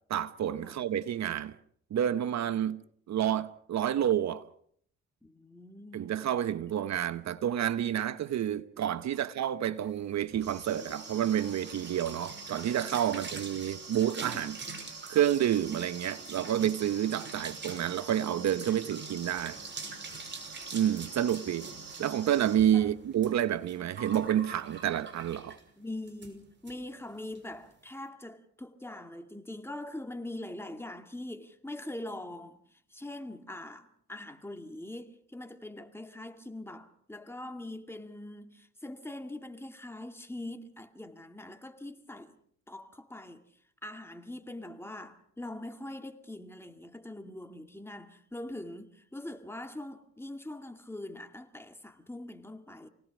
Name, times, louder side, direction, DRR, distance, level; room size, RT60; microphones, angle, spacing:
voice 1, 0.1-1.5 1.9-2.8 3.1-4.4 5.9-14.6 15.1-19.6 20.7-21.7 22.0-25.6, right 10 dB, 65° right, 1.1 m, -29 dB
voice 2, 5.2-6.1 22.7-22.9 25.8-42.4 42.7-43.4 43.8-52.9, left 1 dB, 10° left, 2.4 m, -43 dB
sound 1, 9.9-25.7 26.1-26.3 26.7-26.8 27.0-27.4, right 4 dB, 35° right, 6.0 m, -43 dB
29.0 x 18.5 x 6.1 m
cardioid pair, 90°, 30 cm